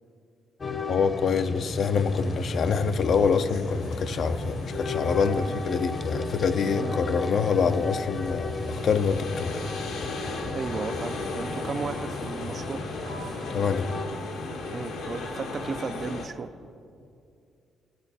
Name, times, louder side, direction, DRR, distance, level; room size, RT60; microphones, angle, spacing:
sound 1, 0.6-14.1, left 2 dB, 35° left, 0.8 m, -35 dB
voice 1, 0.9-9.6 13.5-13.9, left 5 dB, 60° left, 0.5 m, -26 dB
sound 2, 1.7-16.3, left 3 dB, 85° left, 1.5 m, -37 dB
voice 2, 10.5-12.9 14.7-16.5, right 5 dB, 45° right, 0.4 m, -35 dB
13.5 x 13.0 x 4.1 m
cardioid pair, 90°, 0 cm